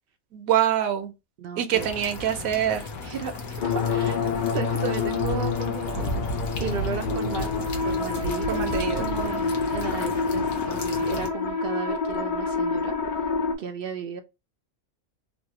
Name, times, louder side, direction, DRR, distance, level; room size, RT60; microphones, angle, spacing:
voice 1, 0.3-1.1 1.6-2.8 8.5-9.5, right 10 dB, 85° right, 1.1 m, -25 dB
voice 2, 1.4-1.9 3.0-3.4 3.6-4.2 4.5-6.2 6.6-7.5 7.8-8.6 9.0-9.4 9.7-13.1 13.6-14.2, right 6 dB, 65° right, 0.6 m, -34 dB
sound 1, 1.7-11.3, left 1 dB, 80° left, 1.2 m, -34 dB
sound 2, 3.6-13.5, left 5 dB, 55° left, 0.5 m, -27 dB
3.3 x 2.3 x 2.7 m
omnidirectional pair, 1.4 m